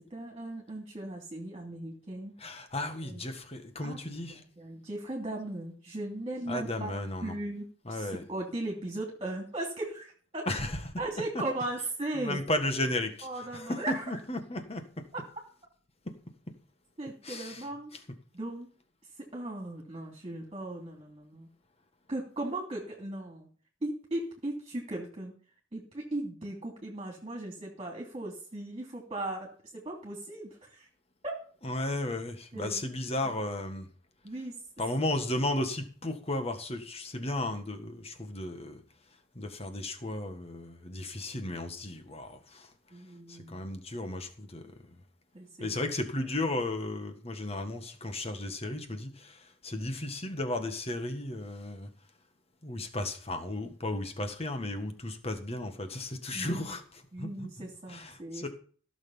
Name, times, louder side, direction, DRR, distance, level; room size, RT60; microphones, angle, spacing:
voice 1, 0.1-2.3 3.0-3.2 3.8-6.9 7.2-10.5 11.0-12.4 13.2-14.2 17.0-17.9 18.3-18.7 19.3-21.5 22.1-23.5 23.8-25.3 25.7-30.9 31.2-31.3 32.5-32.8 34.2-34.5 42.9-43.6 45.3-45.7 56.3-56.6 57.1-58.5, right 1 dB, 30° right, 0 dB, 2.9 m, -37 dB
voice 2, 2.4-4.4 6.5-7.4 7.9-8.2 10.5-11.0 11.4-11.5 12.2-13.3 13.5-15.1 17.2-17.6 17.9-18.0 31.6-33.9 34.8-38.8 39.4-42.7 43.3-44.7 45.6-51.9 52.6-58.5, left 1 dB, 30° left, 7 dB, 1.6 m, -34 dB
16.0 x 6.7 x 5.5 m, 0.44 s
head